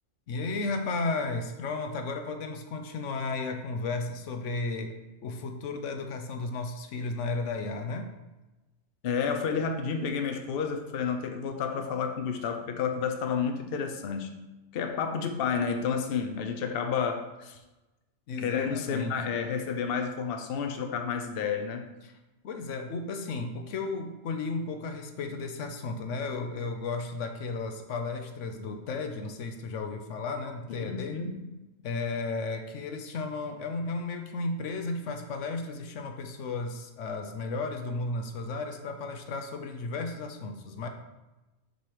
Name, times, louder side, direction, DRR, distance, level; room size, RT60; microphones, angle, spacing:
voice 1, 0.3-5.0 5.2-8.1 18.3-19.3 22.0-22.1 22.4-31.2 31.8-40.9, left 3 dB, 80° left, 5 dB, 1.0 m, -34 dB
voice 2, 9.0-14.4 14.7-17.6 18.4-21.8 30.8-31.4, left 6 dB, 60° left, 5 dB, 0.8 m, -30 dB
6.7 x 3.0 x 4.8 m, 1.1 s
omnidirectional pair, 1.3 m